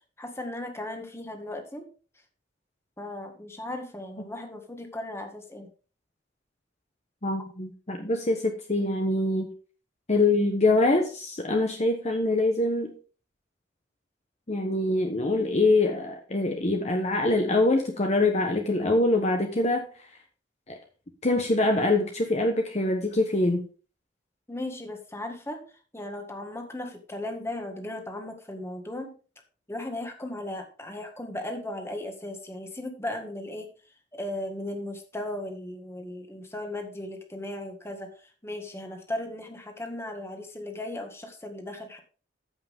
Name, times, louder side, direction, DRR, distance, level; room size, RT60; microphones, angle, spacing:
voice 1, 0.2-1.9 3.0-5.7 24.5-25.6 25.9-29.1 29.7-33.7 34.1-38.1 38.4-42.0, left 1 dB, 15° left, 4 dB, 1.7 m, -36 dB
voice 2, 7.2-9.5 10.1-12.9 14.5-19.9 20.7-20.8 21.2-23.6, left 2 dB, 35° left, 3 dB, 1.1 m, -24 dB
14.0 x 5.8 x 3.6 m, 0.37 s
head